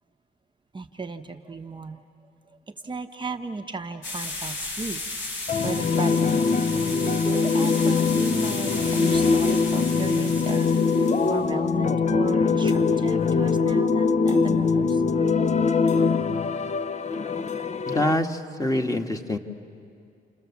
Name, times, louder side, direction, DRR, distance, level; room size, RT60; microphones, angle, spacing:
voice 1, 0.7-2.0 2.7-5.4 5.6-6.7 7.0-15.0, right 3 dB, 25° right, 4 dB, 0.9 m, -35 dB
sound 1, 4.0-11.3, left 2 dB, 65° left, 7.1 m, -35 dB
sound 2, 5.5-18.1, left 4 dB, 35° left, 0.7 m, -22 dB
voice 2, 17.9-19.4, left 1 dB, 15° left, 4 dB, 1.6 m, -25 dB
29.0 x 29.0 x 7.2 m, 2.4 s
cardioid pair, 90°, 20 cm